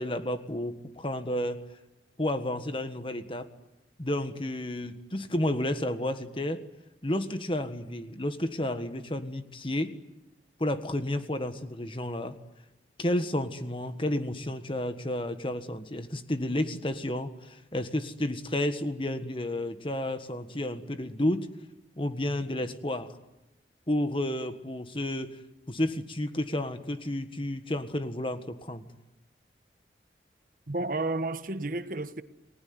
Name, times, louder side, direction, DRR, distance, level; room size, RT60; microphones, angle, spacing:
voice 1, 0.0-1.6 2.2-3.5 4.0-6.6 7.0-9.9 10.6-12.3 13.0-21.5 22.0-23.1 23.9-25.4 25.7-28.8, left 1 dB, 30° left, 1.6 m, -31 dB
voice 2, 30.7-32.2, right 2 dB, 50° right, 1.2 m, -31 dB
30.0 x 20.0 x 9.6 m
head